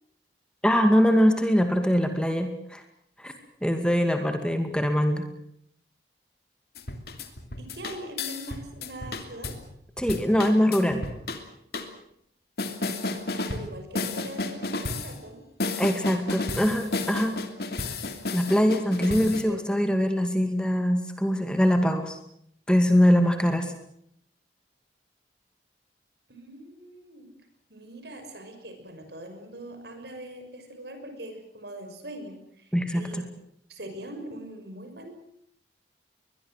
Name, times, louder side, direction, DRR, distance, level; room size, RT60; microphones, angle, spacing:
voice 1, 0.6-2.8 3.2-3.3 3.6-5.3 10.0-11.0 15.8-17.4 18.3-22.2 22.7-23.7 32.7-33.2, equal, 5° left, 6 dB, 2.2 m, -23 dB
sound 1, 6.7-9.6 10.0-11.4 11.7-11.9 12.6-13.7 13.9-15.1 15.6-19.4, left 2 dB, 60° left, 2.9 m, -32 dB
voice 2, 7.6-9.5 13.0-15.4 18.9-19.6 26.3-27.3 27.7-33.3 33.7-35.2, right 1 dB, 70° right, 6 dB, 6.2 m, -42 dB
22.0 x 21.5 x 7.8 m, 0.72 s
head